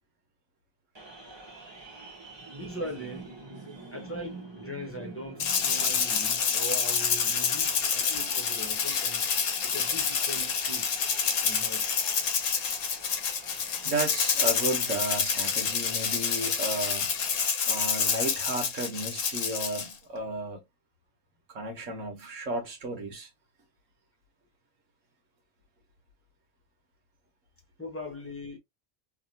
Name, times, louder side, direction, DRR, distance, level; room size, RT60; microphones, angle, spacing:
sound 1, 1.0-17.5, right 3 dB, 20° right, 1.1 m, -48 dB
voice 1, 2.6-3.4 3.9-9.3 9.6-11.0 11.4-11.9 17.6-17.7 27.8-28.6, equal, 10° left, 0.8 m, -40 dB
Rattle (instrument), 5.4-19.9, left 6 dB, 75° left, 1.2 m, -28 dB
voice 2, 13.8-17.1 17.6-20.6 21.5-23.3, right 2 dB, 70° right, 1.5 m, -33 dB
3.0 x 2.9 x 2.7 m
omnidirectional pair, 1.4 m